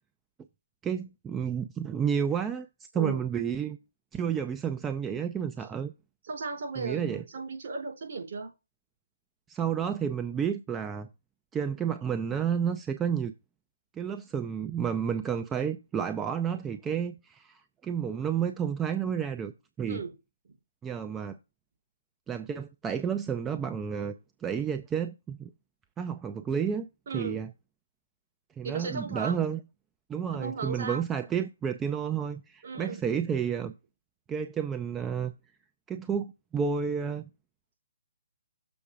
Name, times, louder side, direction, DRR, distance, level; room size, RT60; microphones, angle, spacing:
voice 1, 0.8-2.7 2.9-3.8 4.1-5.9 6.8-7.2 9.5-11.1 11.5-13.3 14.0-19.5 19.8-20.0 20.8-21.4 22.3-24.1 24.4-25.5 26.0-26.9 27.1-27.5 28.6-29.6 30.1-33.7 34.3-35.3 35.9-37.3, right 7 dB, 15° right, 0.4 m, -31 dB
voice 2, 6.2-8.5 19.9-20.1 27.1-27.4 28.6-29.4 30.3-31.0 32.6-33.0, right 4 dB, 55° right, 4.8 m, -36 dB
7.0 x 4.5 x 5.0 m
figure-of-eight pair, 140°, 0 cm